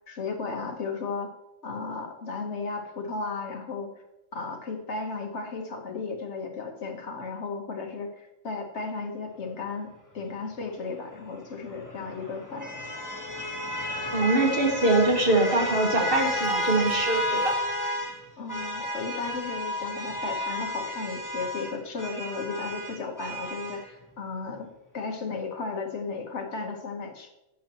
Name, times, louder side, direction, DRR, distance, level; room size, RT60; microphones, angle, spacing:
voice 1, 0.1-1.3 1.6-3.9 4.3-12.7 18.4-24.7 24.9-27.3, left 4 dB, 65° left, 4 dB, 1.5 m, -34 dB
sound 1, 11.5-18.2 18.5-23.8, equal, 15° left, 1.2 m, -32 dB
voice 2, 14.1-17.5, right 2 dB, 50° right, 2 dB, 1.7 m, -23 dB
11.0 x 8.8 x 3.0 m, 0.91 s
omnidirectional pair, 1.3 m